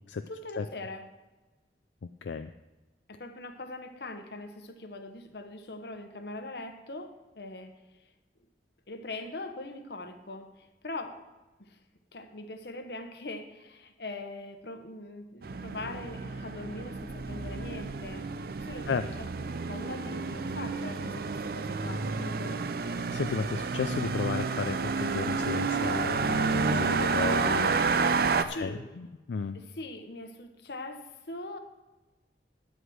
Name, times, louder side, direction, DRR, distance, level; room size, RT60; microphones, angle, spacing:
voice 1, 0.3-1.1 3.1-7.8 8.9-11.2 11.6-11.8 12.1-18.2 18.6-22.6 28.4-28.8 29.5-31.6, left 2 dB, 65° left, 7 dB, 1.0 m, -42 dB
voice 2, 2.2-2.5 18.9-19.1 23.1-27.8 28.4-29.6, left 5 dB, 85° left, 9 dB, 0.4 m, -33 dB
sound 1, 15.4-28.4, right 4 dB, 55° right, 0.5 m, -30 dB
9.7 x 8.0 x 6.3 m, 1.2 s
head